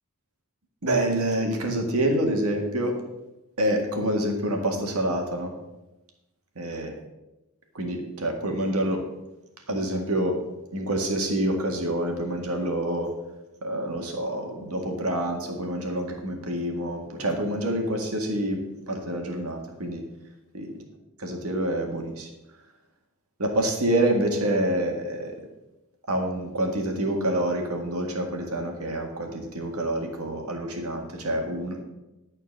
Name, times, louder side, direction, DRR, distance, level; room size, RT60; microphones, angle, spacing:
voice 1, 0.8-3.0 3.6-5.5 6.6-6.9 7.7-9.1 9.7-10.4 10.7-13.1 13.6-18.6 18.9-20.0 20.5-20.7 21.2-22.3 23.4-25.4 26.1-31.8, right 1 dB, 80° right, 3 dB, 1.9 m, -27 dB
11.5 x 4.4 x 7.2 m, 0.98 s
head